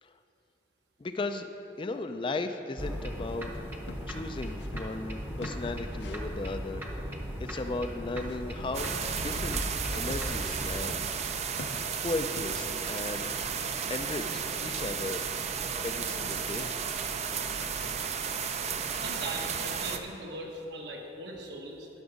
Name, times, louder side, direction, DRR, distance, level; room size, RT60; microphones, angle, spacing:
voice 1, 1.0-1.5 1.8-3.5 4.1-6.9 7.4-11.1 11.3-11.4 12.0-13.3 13.9-15.3 15.8-16.7, left 2 dB, 30° left, 8 dB, 0.4 m, -36 dB
sound 1, 2.8-10.8, equal, 10° right, 0.8 m, -37 dB
sound 2, 3.6-4.9 5.2-6.3 8.2-8.9 9.2-12.8, left 2 dB, 85° left, 0.7 m, -45 dB
sound 3, 8.7-20.0, right 6 dB, 40° right, 0.5 m, -33 dB
voice 2, 18.9-21.9, right 1 dB, 75° right, 0 dB, 1.5 m, -40 dB
11.5 x 6.0 x 5.3 m, 3.0 s
head